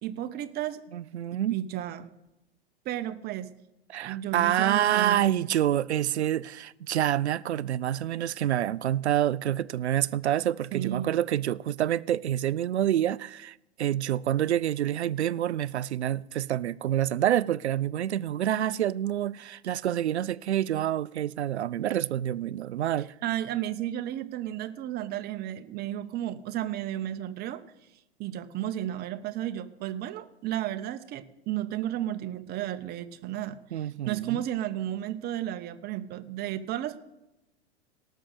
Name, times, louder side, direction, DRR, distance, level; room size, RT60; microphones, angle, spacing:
voice 1, 0.0-0.8 1.3-2.1 2.8-3.5 4.0-5.5 10.7-11.1 23.2-27.6 28.2-37.0, right 12 dB, 30° right, 0.8 m, -33 dB
voice 2, 0.9-1.6 3.9-23.1 33.7-34.4, right 11 dB, 80° right, 0.5 m, -27 dB
18.0 x 6.5 x 6.5 m
figure-of-eight pair, 95°, 33 cm